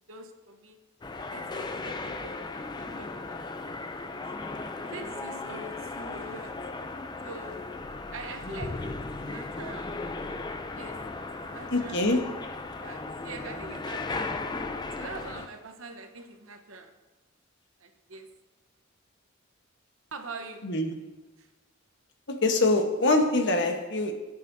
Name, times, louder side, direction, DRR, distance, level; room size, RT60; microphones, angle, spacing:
voice 1, 0.1-0.8 1.2-3.4 4.0-4.2 4.8-6.6 7.2-7.6 8.1-9.9 10.8-11.0 11.5-12.1 12.8-14.3 14.9-16.9 17.8-18.3 20.1-20.7 21.4-21.5, right 3 dB, 70° right, 6 dB, 1.0 m, -43 dB
sound 1, 1.0-15.5, left 3 dB, 20° left, 0.4 m, -36 dB
voice 2, 11.7-12.2 20.6-21.0 22.3-24.1, left 2 dB, 55° left, 4 dB, 1.2 m, -24 dB
20.5 x 8.3 x 2.7 m, 1.1 s
head